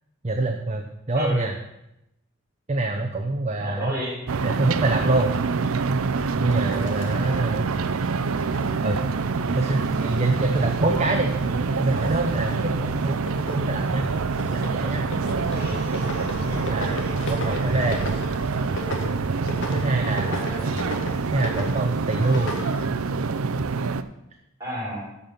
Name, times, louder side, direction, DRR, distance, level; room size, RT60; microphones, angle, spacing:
voice 1, 0.2-1.5 2.7-3.9 4.4-5.3 6.4-7.7 8.8-9.0 9.5-11.3 11.8-13.2 13.5-14.1 14.5-15.0 16.5-18.0 19.7-20.7 21.3-22.5, right 2 dB, 30° right, 3 dB, 0.7 m, -25 dB
voice 2, 3.6-4.1 15.0-15.8 19.8-20.8 24.6-25.0, equal, 15° right, -5 dB, 4.8 m, -33 dB
sound 1, 4.3-24.0, right 4 dB, 80° right, 0.5 m, -26 dB
sound 2, 5.2-8.7 9.0-22.6, left 1 dB, 60° left, 1.7 m, -37 dB
sound 3, 15.4-18.8 22.1-22.9, left 3 dB, 80° left, 1.5 m, -44 dB
13.5 x 5.5 x 5.8 m, 0.87 s
head